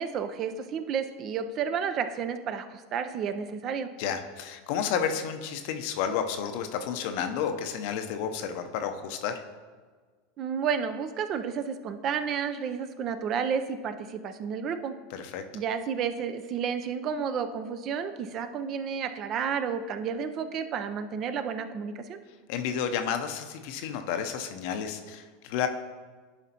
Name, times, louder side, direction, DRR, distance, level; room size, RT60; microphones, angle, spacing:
voice 1, 0.0-3.9 10.4-14.9 15.5-22.2, right 7 dB, 45° right, 10 dB, 0.5 m, -31 dB
voice 2, 4.0-9.4 15.1-15.4 22.5-25.7, left 8 dB, 60° left, 7 dB, 0.6 m, -31 dB
11.0 x 5.0 x 2.9 m, 1.5 s
hypercardioid pair, 85°, 0 cm